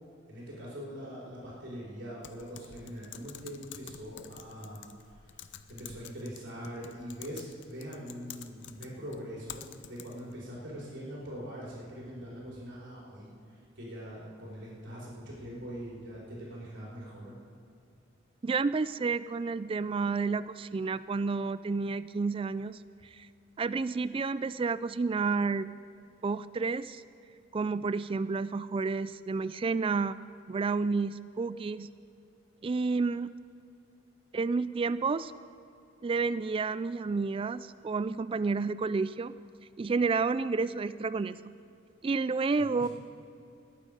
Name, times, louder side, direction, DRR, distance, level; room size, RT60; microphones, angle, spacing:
voice 1, 0.3-4.8 5.7-13.3 13.8-17.3 42.6-42.9, equal, 60° right, -5 dB, 4.1 m, -42 dB
Typing, 2.2-10.4, left 9 dB, 60° left, 0.6 m, -49 dB
voice 2, 18.4-22.8 23.1-23.3 23.6-25.7 26.2-27.0 27.5-30.2 30.5-31.9 32.6-33.3 34.3-35.3 36.0-39.3 39.8-41.4 42.0-42.9, right 4 dB, 25° right, 15 dB, 0.3 m, -30 dB
19.5 x 9.1 x 5.1 m, 2.6 s
head